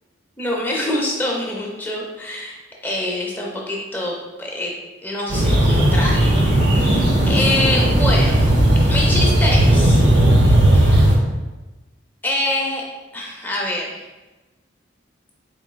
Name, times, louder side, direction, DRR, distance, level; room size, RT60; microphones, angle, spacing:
voice 1, 0.4-2.6 2.8-4.7 5.0-6.3 6.7-8.5 8.9-10.0 10.7-11.0 12.2-12.8 13.1-14.0, left 1 dB, 10° left, -2 dB, 0.6 m, -25 dB
sound 1, 5.3-11.1, right 1 dB, 65° right, 0.7 m, -15 dB
4.3 x 4.0 x 2.2 m, 1.2 s
head